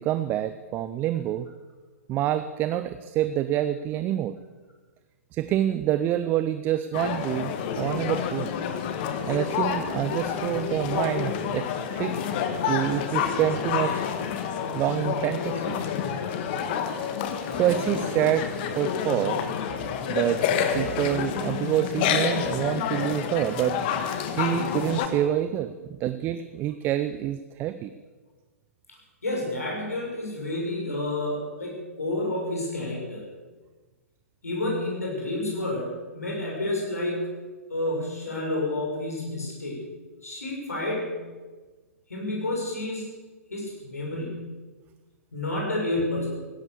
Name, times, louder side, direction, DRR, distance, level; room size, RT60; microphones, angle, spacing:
voice 1, 0.0-1.5 2.1-4.4 5.3-8.5 9.3-11.7 12.0-12.2 12.7-14.1 14.7-15.8 17.5-18.5 18.8-19.4 20.1-20.4 20.7-23.8 24.4-27.9, right 12 dB, 25° right, 12 dB, 0.6 m, -27 dB
sound 1, 6.9-25.1, left 7 dB, 40° left, 1.6 m, -28 dB
voice 2, 29.2-33.2 34.4-37.3 37.7-39.8 40.2-41.2 42.1-43.0 43.5-44.5 45.3-46.3, left 1 dB, 75° left, -2 dB, 6.9 m, -30 dB
16.5 x 12.5 x 6.9 m, 1.3 s
figure-of-eight pair, 115°, 8 cm